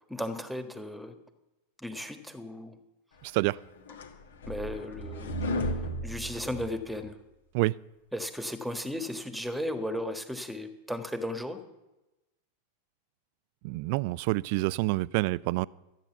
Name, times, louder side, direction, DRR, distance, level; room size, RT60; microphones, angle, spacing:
voice 1, 0.1-1.2 1.8-2.8 4.5-7.2 8.1-11.6, left 1 dB, 5° right, 1.4 m, -35 dB
voice 2, 3.2-3.6 7.5-7.8 13.6-15.7, right 20 dB, 45° right, 0.3 m, -27 dB
sound 1, 3.4-7.1, equal, 65° left, 1.5 m, -34 dB
13.5 x 9.1 x 7.0 m
figure-of-eight pair, 90°, 0 cm